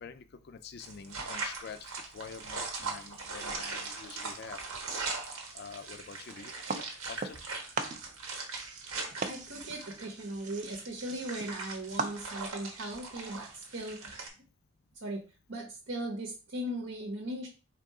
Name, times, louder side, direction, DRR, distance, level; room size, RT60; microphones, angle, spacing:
voice 1, 0.0-4.6 5.5-7.4, left 5 dB, 50° left, 11 dB, 0.4 m, -47 dB
sound 1, 0.8-14.3, right 4 dB, 85° right, 1.1 m, -40 dB
sound 2, 6.7-7.5 7.7-12.6, right 4 dB, 35° right, 0.4 m, -39 dB
voice 2, 9.3-14.2 15.0-15.2 15.5-17.5, right 1 dB, 65° right, 0 dB, 0.9 m, -38 dB
3.7 x 2.8 x 4.7 m, 0.34 s
head